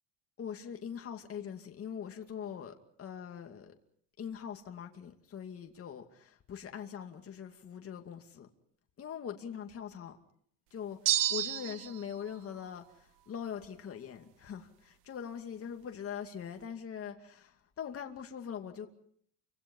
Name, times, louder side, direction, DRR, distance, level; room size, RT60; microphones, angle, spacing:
voice 1, 0.4-3.7 4.2-8.5 9.0-10.2 10.7-18.9, left 8 dB, 30° left, 2.5 m, -42 dB
sound 1, 11.1-12.0, right 13 dB, 80° right, 1.6 m, -30 dB
29.5 x 25.5 x 5.6 m
cardioid pair, 160°, 43 cm